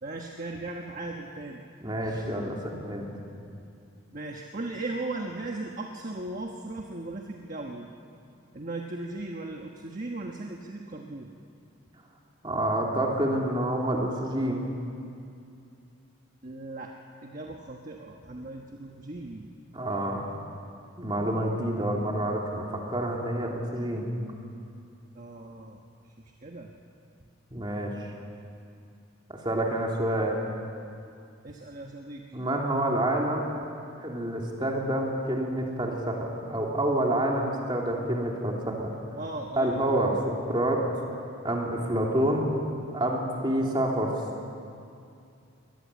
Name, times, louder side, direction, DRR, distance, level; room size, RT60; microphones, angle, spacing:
voice 1, 0.0-1.6 2.0-2.3 4.1-7.9 8.5-11.3 16.4-16.9 17.2-19.5 25.1-26.7 31.4-32.2 39.2-39.8, right 2 dB, 40° right, 1 dB, 1.3 m, -37 dB
voice 2, 1.8-3.1 12.4-14.7 19.7-20.3 21.0-24.1 27.5-27.9 29.3-30.4 32.3-33.5 34.0-38.9 39.6-40.9 41.4-42.4 42.9-44.1, right 1 dB, 20° right, -1 dB, 3.1 m, -28 dB
23.5 x 19.0 x 8.4 m, 2.5 s
head